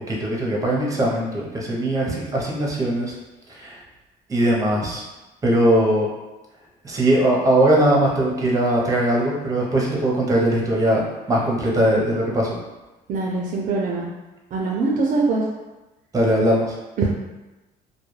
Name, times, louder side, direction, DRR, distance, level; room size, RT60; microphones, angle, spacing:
voice 1, 0.1-3.1 3.5-3.8 4.3-5.0 5.4-6.1 6.8-11.0 11.3-12.6 16.1-16.7, right 1 dB, 20° right, -3 dB, 0.7 m, -20 dB
voice 2, 13.1-14.1 14.5-15.5 17.0-17.1, right 3 dB, 50° right, -2 dB, 0.4 m, -22 dB
2.2 x 2.2 x 3.1 m, 1.1 s
cardioid pair, 110°, 17 cm